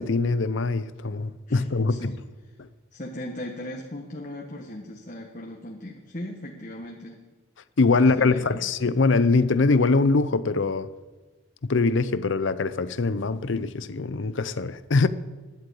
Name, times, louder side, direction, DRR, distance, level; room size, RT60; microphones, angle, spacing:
voice 1, 0.0-2.1 7.8-10.9 11.6-15.1, left 3 dB, 70° left, 0.6 m, -23 dB
voice 2, 1.5-2.2 2.9-7.2 7.9-8.5, left 1 dB, 40° left, 1.4 m, -38 dB
11.5 x 11.5 x 8.4 m
head